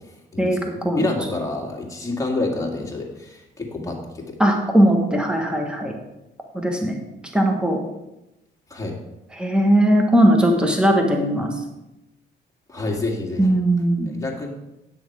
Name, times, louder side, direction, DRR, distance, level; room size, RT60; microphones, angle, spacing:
voice 1, 0.4-1.1 4.4-5.9 6.5-7.0 7.3-7.8 9.4-11.5 13.4-14.2, right 1 dB, 5° right, 2 dB, 1.4 m, -19 dB
voice 2, 1.0-4.4 8.7-9.0 12.7-13.6 14.1-14.5, left 2 dB, 15° left, -1 dB, 2.2 m, -28 dB
9.4 x 6.4 x 4.7 m, 0.95 s
cardioid pair, 90°, 20 cm